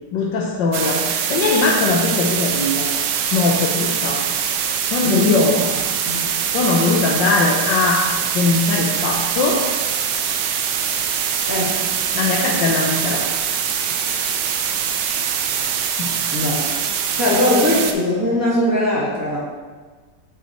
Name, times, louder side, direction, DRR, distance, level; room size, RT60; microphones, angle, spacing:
voice 1, 0.1-2.9 3.3-4.2 4.9-5.5 6.5-8.0 8.3-9.6 12.1-13.2 16.0-16.2, left 3 dB, 80° left, -2 dB, 1.4 m, -20 dB
sound 1, 0.7-17.9, right 8 dB, 75° right, 1.2 m, -23 dB
voice 2, 5.0-5.6 6.0-6.3 11.4-11.7 16.3-16.6 17.2-19.4, left 1 dB, 10° right, -8 dB, 1.5 m, -20 dB
6.8 x 6.5 x 3.0 m, 1.4 s
omnidirectional pair, 2.0 m